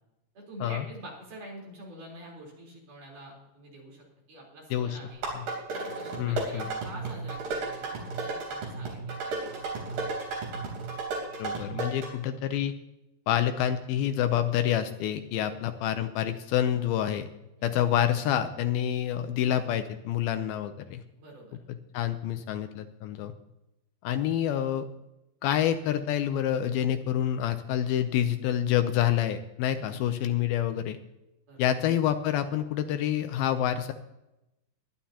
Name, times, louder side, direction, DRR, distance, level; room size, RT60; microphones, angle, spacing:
voice 1, 0.4-5.2 5.7-10.1 15.3-15.8 17.6-17.7 21.2-21.6 29.7-30.0 31.5-31.7, right 1 dB, 55° right, -2 dB, 5.3 m, -47 dB
sound 1, 5.1-12.1, right 3 dB, 75° right, 5.6 m, -34 dB
voice 2, 6.2-6.7 11.4-12.7 13.3-17.3 17.6-21.0 21.9-23.3 24.0-24.9 25.4-31.0 31.6-33.9, left 10 dB, 80° left, 9 dB, 2.5 m, -27 dB
22.0 x 11.5 x 2.9 m, 0.92 s
omnidirectional pair, 4.6 m